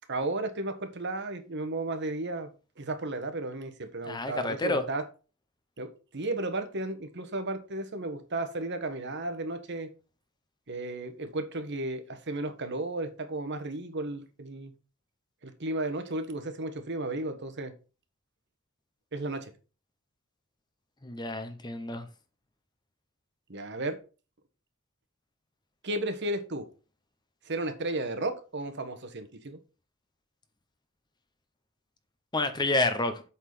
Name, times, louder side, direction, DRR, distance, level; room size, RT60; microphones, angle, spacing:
voice 1, 0.1-2.5 2.8-5.0 5.8-9.9 10.7-14.7 15.4-17.7 19.1-19.5 23.5-24.0 25.8-26.7 27.4-29.6, right 2 dB, 55° right, 1.2 m, -34 dB
voice 2, 4.0-4.8 21.0-22.1 32.3-33.2, left 2 dB, 20° left, 0.8 m, -29 dB
8.0 x 4.0 x 6.0 m
head